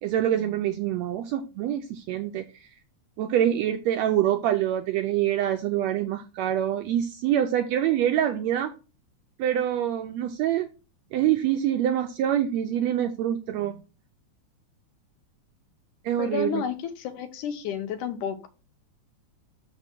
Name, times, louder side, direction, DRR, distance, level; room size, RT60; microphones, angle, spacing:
voice 1, 0.0-2.4 3.2-8.7 9.4-10.7 11.1-13.8 16.0-16.6, right 11 dB, 85° right, 1.6 m, -25 dB
voice 2, 16.2-18.5, left 8 dB, 80° left, 2.4 m, -31 dB
6.8 x 5.2 x 4.4 m
omnidirectional pair, 3.6 m